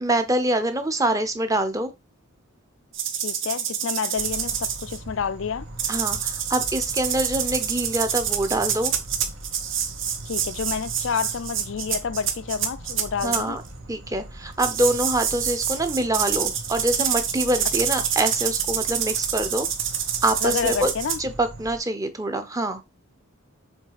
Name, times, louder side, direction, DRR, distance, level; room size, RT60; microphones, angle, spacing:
voice 1, 0.0-1.9 5.9-8.9 13.2-13.6 13.9-19.7 20.2-20.9 21.2-22.8, right 1 dB, 15° right, 0.7 m, -25 dB
sound 1, 2.9-5.0 5.8-13.4 14.6-21.2, right 8 dB, 55° right, 1.1 m, -27 dB
voice 2, 3.2-5.7 10.2-13.6 20.4-21.2, left 6 dB, 60° left, 0.4 m, -29 dB
sound 2, 4.1-21.8, right 1 dB, 80° right, 2.1 m, -41 dB
7.3 x 3.2 x 4.8 m
head